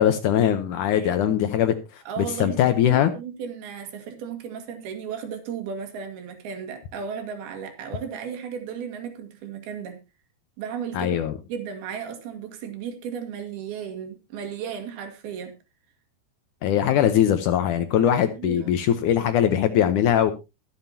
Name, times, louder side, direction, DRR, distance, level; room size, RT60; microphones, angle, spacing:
voice 1, 0.0-3.1 10.9-11.4 16.6-20.3, left 10 dB, 80° left, 1.8 m, -21 dB
voice 2, 1.0-1.4 2.1-10.0 10.6-11.2 11.5-15.6 18.0-18.7, right 7 dB, 70° right, 3.7 m, -35 dB
22.5 x 7.5 x 2.8 m
omnidirectional pair, 4.8 m